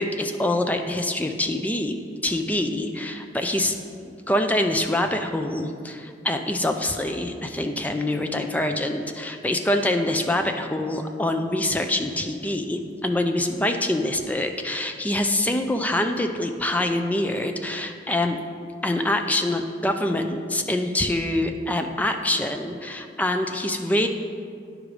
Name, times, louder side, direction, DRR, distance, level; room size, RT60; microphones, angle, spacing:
voice 1, 0.0-2.0 2.2-3.8 4.3-18.4 18.8-24.1, left 1 dB, 10° left, 5 dB, 0.4 m, -25 dB
9.9 x 5.0 x 4.8 m, 2.3 s
head